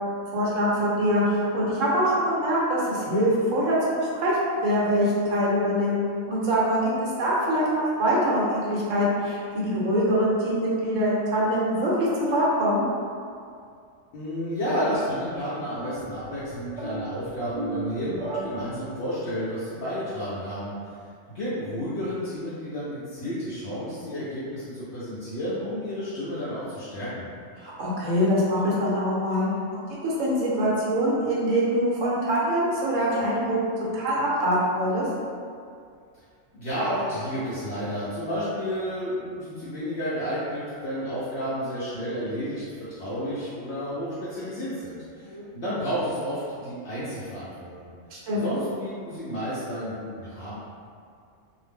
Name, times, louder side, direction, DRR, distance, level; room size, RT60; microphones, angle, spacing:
voice 1, 0.3-6.0 6.3-12.8 27.6-35.0 45.3-45.4 48.1-48.5, equal, 75° right, -6 dB, 1.0 m, -24 dB
voice 2, 14.1-20.7 21.3-27.3 36.5-47.9 48.3-50.5, equal, 60° left, -11 dB, 0.8 m, -31 dB
sound 1, 15.7-19.2, right 3 dB, 45° right, 0.6 m, -36 dB
2.6 x 2.0 x 3.3 m, 2.3 s
omnidirectional pair, 1.4 m